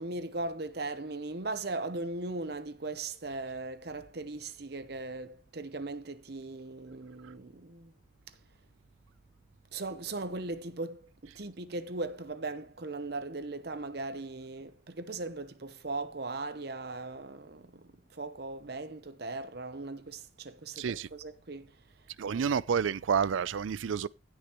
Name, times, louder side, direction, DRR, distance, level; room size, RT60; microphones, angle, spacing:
voice 1, 0.0-7.9 9.7-21.7 22.2-22.6, right 2 dB, 55° right, 0.9 m, -38 dB
voice 2, 20.8-21.1 22.2-24.1, right 7 dB, 85° right, 0.4 m, -29 dB
15.5 x 6.5 x 3.0 m
head